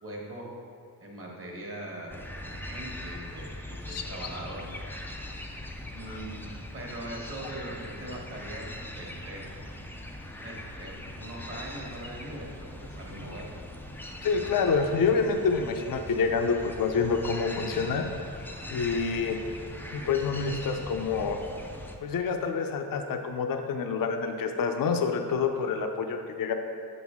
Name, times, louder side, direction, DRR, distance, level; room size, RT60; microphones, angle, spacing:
voice 1, 0.0-0.5 1.0-4.7 5.9-9.5 10.4-13.5, right 1 dB, 35° right, -2 dB, 1.2 m, -41 dB
sound 1, 2.1-22.0, left 1 dB, 5° left, 0.3 m, -41 dB
voice 2, 3.9-4.3 6.1-6.2 14.2-18.3 18.7-19.4 19.9-21.4 22.0-26.5, left 5 dB, 60° left, 5 dB, 0.6 m, -27 dB
7.7 x 6.1 x 3.6 m, 2.3 s
wide cardioid pair, 175°, 39 cm